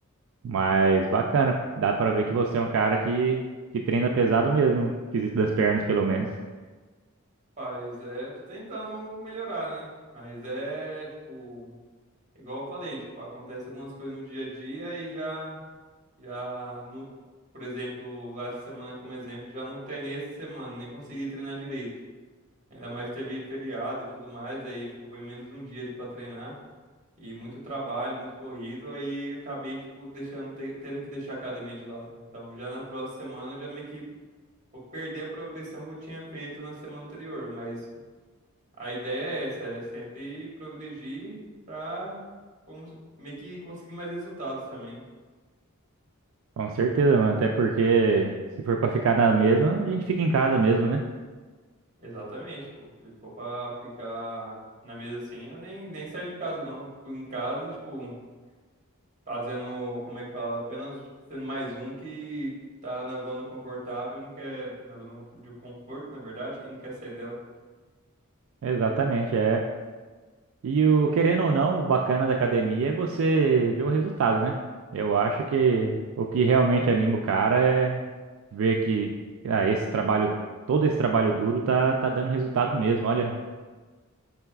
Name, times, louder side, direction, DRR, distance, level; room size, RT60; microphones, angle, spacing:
voice 1, 0.4-3.4 3.7-6.3 46.6-48.4 48.6-51.0 68.6-69.6 70.6-74.6 74.9-78.0 78.5-79.1 79.4-80.3 80.7-83.4, right 4 dB, 65° right, 2 dB, 0.3 m, -23 dB
voice 2, 7.6-11.7 12.3-15.6 16.2-17.1 17.5-21.9 22.7-26.5 27.2-34.0 34.9-37.8 38.8-41.4 41.7-42.2 42.7-45.0 52.0-54.6 54.8-58.2 59.3-67.3, right 1 dB, 35° right, -5 dB, 1.4 m, -36 dB
5.6 x 3.8 x 2.3 m, 1.4 s
head